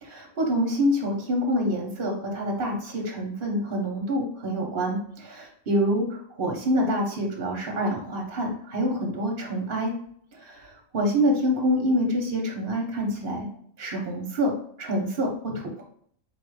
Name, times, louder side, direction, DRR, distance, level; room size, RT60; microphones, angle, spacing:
voice 1, 0.0-6.0 6.4-9.9 10.3-13.5 13.8-14.5 14.8-15.8, equal, 45° right, 1 dB, 0.9 m, -26 dB
4.2 x 2.4 x 4.7 m, 0.63 s
omnidirectional pair, 1.5 m